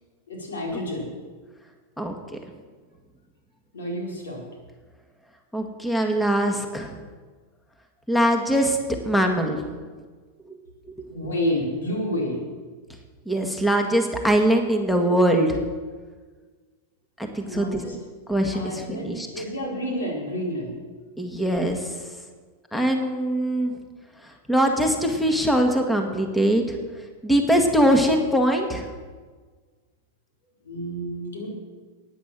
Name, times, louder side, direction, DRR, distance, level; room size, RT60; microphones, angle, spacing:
voice 1, 0.3-1.1 3.7-4.4 11.1-12.4 17.5-18.0 18.5-20.7 30.6-31.5, equal, 90° left, -2 dB, 4.7 m, -29 dB
voice 2, 5.5-6.9 8.1-8.8 9.0-9.6 13.3-15.6 17.3-17.8 18.3-19.4 21.2-21.9 22.7-23.7 24.2-26.8 27.2-28.9, equal, 5° left, 4 dB, 1.8 m, -22 dB
11.5 x 9.7 x 7.6 m, 1.4 s
hypercardioid pair, 115°, 0 cm